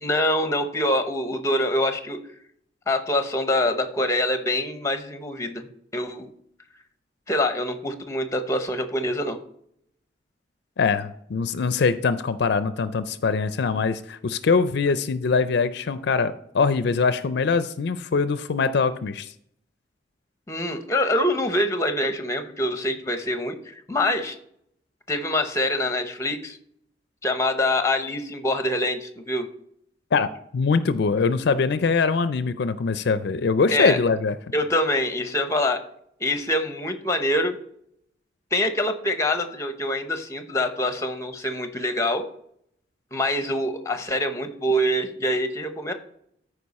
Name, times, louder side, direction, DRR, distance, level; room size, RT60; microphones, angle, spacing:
voice 1, 0.0-2.2 2.9-5.7 5.9-6.3 7.3-9.4 20.5-24.3 25.1-26.6 27.2-29.5 33.7-34.0 34.5-35.8 36.2-37.6 38.5-42.3 43.1-45.9, left 1 dB, 15° left, 8 dB, 0.9 m, -25 dB
voice 2, 10.8-19.3 30.1-34.3, left 4 dB, 65° left, 12 dB, 0.4 m, -23 dB
13.5 x 4.9 x 4.2 m, 0.70 s
head